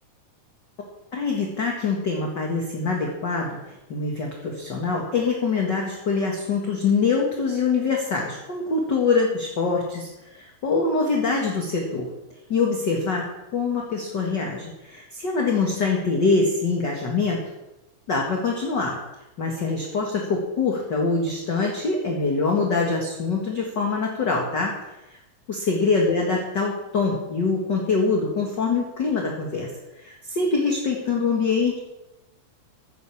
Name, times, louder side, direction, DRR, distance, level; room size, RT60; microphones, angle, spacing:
voice 1, 1.1-12.1 12.5-17.4 18.1-19.0 19.4-24.8 25.5-29.7 30.0-31.8, left 4 dB, 40° left, -1 dB, 1.8 m, -24 dB
14.0 x 9.3 x 7.2 m, 0.97 s
omnidirectional pair, 4.4 m